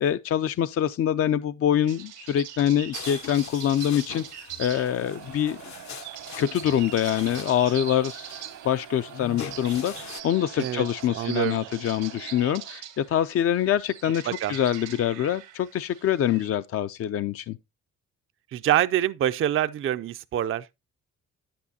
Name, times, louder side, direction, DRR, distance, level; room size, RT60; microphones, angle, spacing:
voice 1, 0.0-5.6 6.4-14.2 14.5-17.6, left 10 dB, 50° left, 0.4 m, -25 dB
sound 1, 1.8-16.5, right 11 dB, 90° right, 1.6 m, -42 dB
sound 2, 2.9-10.2, left 8 dB, 65° left, 0.8 m, -42 dB
Crowd, 4.7-12.8, right 11 dB, 70° right, 1.0 m, -45 dB
voice 2, 11.1-11.7 14.3-14.5 18.5-20.7, right 11 dB, 45° right, 0.4 m, -25 dB
9.6 x 8.6 x 2.7 m
cardioid pair, 90°, 30 cm